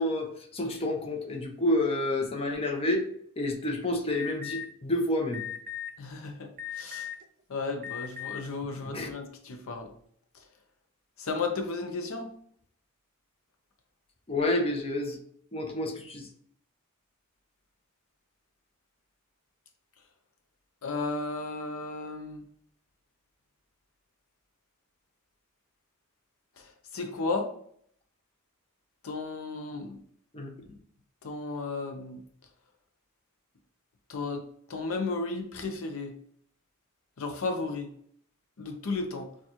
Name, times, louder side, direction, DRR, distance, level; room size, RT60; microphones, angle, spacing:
voice 1, 0.0-3.1 3.4-5.4 8.9-9.1 14.3-15.2 15.5-16.3 30.3-30.5, left 1 dB, 25° left, 0.7 m, -29 dB
Alarm, 4.1-4.6 5.3-5.9 6.6-7.2 7.8-8.4, left 10 dB, 40° right, 0.5 m, -37 dB
voice 2, 6.0-6.5 6.8-7.1 7.5-9.9 11.2-12.3 20.8-22.4 26.6-26.7 26.9-27.5 29.0-30.0 31.2-32.2 34.1-34.4 34.7-36.1 37.2-37.9 38.6-39.3, left 3 dB, 65° left, 0.6 m, -34 dB
6.3 x 2.3 x 3.0 m
head